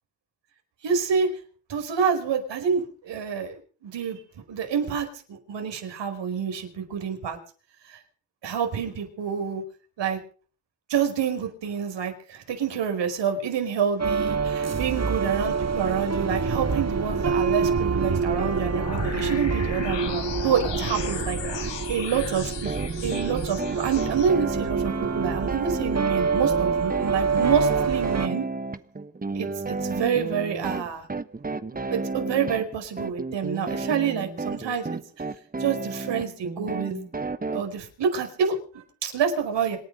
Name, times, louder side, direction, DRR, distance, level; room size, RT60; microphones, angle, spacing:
voice 1, 0.8-1.3 1.7-4.2 4.5-7.4 7.9-8.0 8.4-9.6 10.0-10.2 10.9-28.5 29.3-31.1 31.9-35.0 35.6-36.9 37.5-39.8, right 7 dB, 70° right, 6 dB, 5.2 m, -27 dB
sound 1, 14.0-28.3, right 5 dB, 35° right, 1.7 m, -26 dB
sound 2, 18.3-24.3, left 8 dB, 70° left, 3.1 m, -36 dB
sound 3, 22.7-37.6, right 3 dB, 20° right, 1.4 m, -32 dB
27.0 x 9.8 x 5.3 m, 0.42 s
hypercardioid pair, 50°, 44 cm